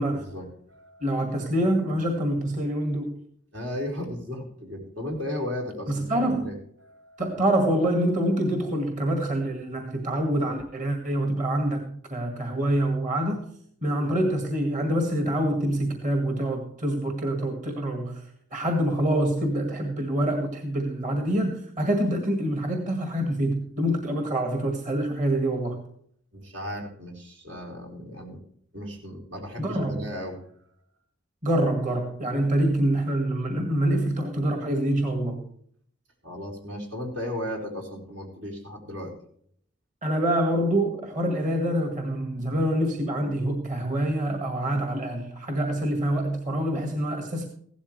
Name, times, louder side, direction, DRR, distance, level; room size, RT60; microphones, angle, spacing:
voice 1, 0.0-1.1 3.5-7.2 26.3-28.4 28.7-30.4 36.2-39.1, left 1 dB, 80° right, 1 dB, 4.3 m, -35 dB
voice 2, 1.0-3.2 5.9-6.5 7.2-13.5 13.8-18.2 18.5-25.8 29.6-30.0 31.4-35.4 40.0-47.5, right 1 dB, 40° right, 4 dB, 1.9 m, -26 dB
16.0 x 12.5 x 3.3 m, 0.63 s
head